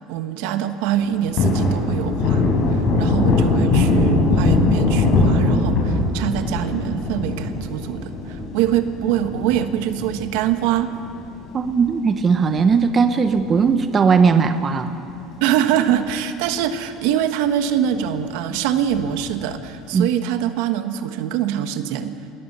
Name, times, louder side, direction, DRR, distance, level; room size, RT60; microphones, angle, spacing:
voice 1, 0.0-2.4 2.7-10.9 15.4-22.4, right 10 dB, 70° right, 8 dB, 1.4 m, -24 dB
Thunder, 0.9-11.7 12.0-12.1 12.5-14.0 14.3-14.4 14.8-15.6 16.0-16.1 16.4-16.5 18.9-19.5, left 2 dB, 45° left, 4.7 m, -21 dB
voice 2, 11.5-14.9 19.9-20.1, right 5 dB, 25° right, 8 dB, 0.9 m, -18 dB
26.0 x 20.0 x 6.8 m, 2.6 s
cardioid pair, 160°, 0 cm